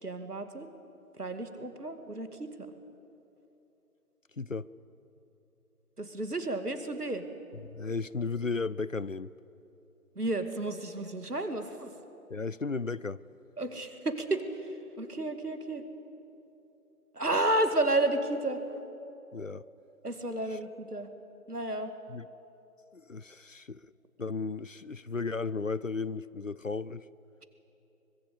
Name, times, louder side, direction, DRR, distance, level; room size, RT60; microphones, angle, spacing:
voice 1, 0.0-0.7 1.2-2.7 6.0-7.2 10.2-11.9 13.6-15.8 17.1-18.6 20.0-21.1 21.5-21.9, right 2 dB, 75° right, 8 dB, 2.4 m, -32 dB
voice 2, 4.4-4.7 7.6-9.3 12.3-13.2 19.3-19.6 22.1-22.3 22.9-23.9 24.2-27.1, left 4 dB, 60° left, 19 dB, 0.5 m, -35 dB
25.0 x 19.0 x 8.4 m, 3.0 s
figure-of-eight pair, 175°, 46 cm